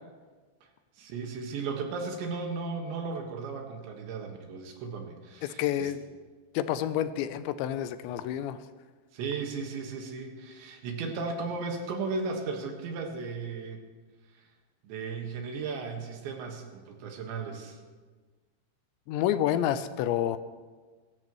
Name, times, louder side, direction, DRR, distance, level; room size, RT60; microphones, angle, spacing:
voice 1, 1.0-5.9 9.1-13.8 14.8-17.8, right 4 dB, 75° right, 2 dB, 3.8 m, -35 dB
voice 2, 5.4-6.0 6.5-8.6 19.1-20.4, left 11 dB, 85° left, 12 dB, 2.8 m, -29 dB
23.0 x 13.5 x 3.1 m, 1.4 s
omnidirectional pair, 5.2 m